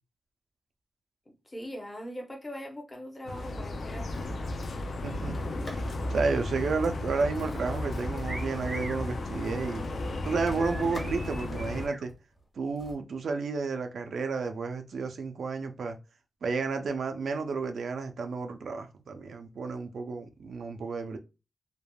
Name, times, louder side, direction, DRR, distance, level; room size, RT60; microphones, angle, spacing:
voice 1, 1.3-4.3, equal, 20° left, 0.6 m, -41 dB
sound 1, 3.2-11.9, left 2 dB, 70° left, 0.4 m, -34 dB
sound 2, 3.8-6.4 6.7-6.9 7.2-12.9, left 1 dB, 40° left, 1.2 m, -49 dB
voice 2, 5.0-9.8 10.2-12.1 12.6-16.0 16.4-21.2, right 4 dB, 90° right, 0.4 m, -32 dB
sound 3, 8.3-9.0 10.6-12.0, right 2 dB, 25° right, 0.5 m, -41 dB
3.2 x 2.1 x 2.3 m
wide cardioid pair, 145°, 0 cm